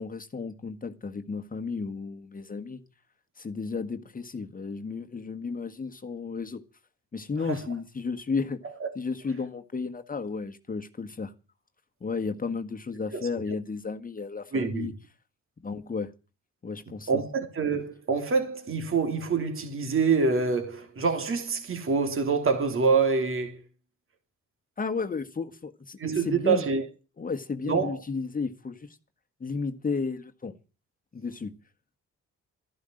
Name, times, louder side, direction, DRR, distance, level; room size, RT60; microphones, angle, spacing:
voice 1, 0.0-2.8 3.4-6.6 7.1-8.6 8.9-11.3 12.0-14.9 15.6-16.1 16.6-17.2 24.8-26.6 27.2-29.0 29.4-30.5 31.1-31.6, left 4 dB, 30° left, 1.6 m, -33 dB
voice 2, 14.5-14.9 17.1-23.6 26.0-26.8 27.7-28.0, right 5 dB, 45° right, 3.0 m, -26 dB
13.5 x 11.5 x 7.8 m
cardioid pair, 90°, 30 cm